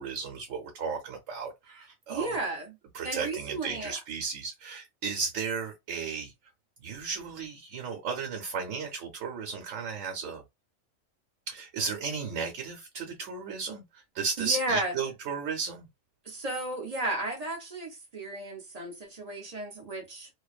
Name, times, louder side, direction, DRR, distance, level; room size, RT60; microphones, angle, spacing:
voice 1, 0.0-2.4 2.9-6.3 6.8-10.4 11.5-13.8 14.1-15.9, right 5 dB, 80° right, 1.1 m, -34 dB
voice 2, 2.1-2.8 3.0-4.0 14.4-14.9 16.2-20.3, right 2 dB, 40° right, 0.6 m, -33 dB
2.5 x 2.2 x 2.3 m
omnidirectional pair, 1.3 m